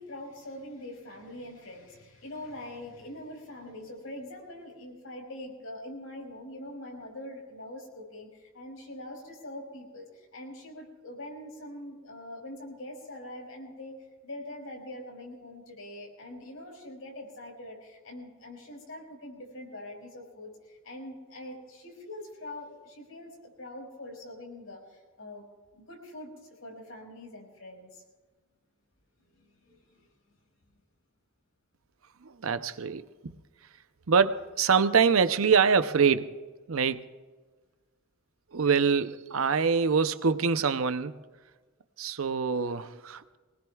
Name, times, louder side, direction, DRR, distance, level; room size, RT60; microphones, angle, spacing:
voice 1, 0.0-14.0 14.2-25.4 25.7-28.0 29.3-30.1, left 1 dB, 85° left, 5.1 m, -43 dB
voice 2, 32.2-33.4 34.1-36.4 36.7-37.1 38.5-41.2 42.0-43.4, right 6 dB, 85° right, 0.7 m, -25 dB
23.5 x 19.5 x 2.4 m
head